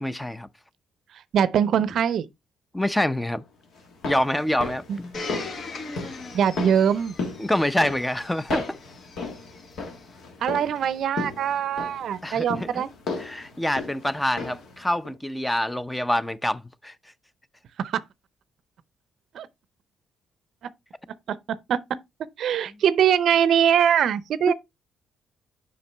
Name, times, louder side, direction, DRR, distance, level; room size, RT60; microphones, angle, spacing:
voice 1, 0.0-0.5 2.7-3.4 4.0-5.2 7.4-8.7 12.2-12.9 13.2-16.9 22.7-22.8 24.5-24.6, left 1 dB, 10° left, 0.5 m, -26 dB
voice 2, 1.3-2.2 4.9-5.0 6.3-7.1 10.4-12.9 17.8-18.0 19.3-19.5 21.3-21.4 21.7-21.8 22.4-24.5, right 8 dB, 70° right, 0.5 m, -22 dB
sound 1, 3.8-14.8 15.0-15.1, left 3 dB, 70° left, 1.6 m, -36 dB
Domestic sounds home sounds, 5.1-10.0 10.8-10.9, left 3 dB, 55° left, 1.4 m, -40 dB
7.0 x 5.1 x 3.3 m
supercardioid pair, 75°, 0 cm